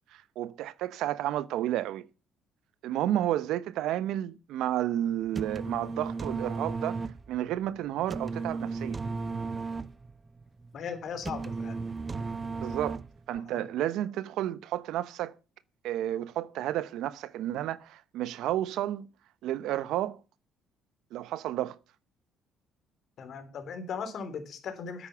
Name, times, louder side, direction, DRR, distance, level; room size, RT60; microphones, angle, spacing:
voice 1, 0.1-2.1 2.8-7.0 7.3-9.0 12.6-13.0 13.3-15.3 15.8-19.1 19.4-20.2 21.1-21.8, right 12 dB, 75° right, 0.8 m, -31 dB
sound 1, 5.1-13.4, right 4 dB, 20° right, 0.6 m, -35 dB
voice 2, 10.7-11.9 13.3-13.7 23.2-25.1, left 6 dB, 50° left, 3.2 m, -38 dB
10.0 x 8.6 x 6.9 m
cardioid pair, 125°, 0 cm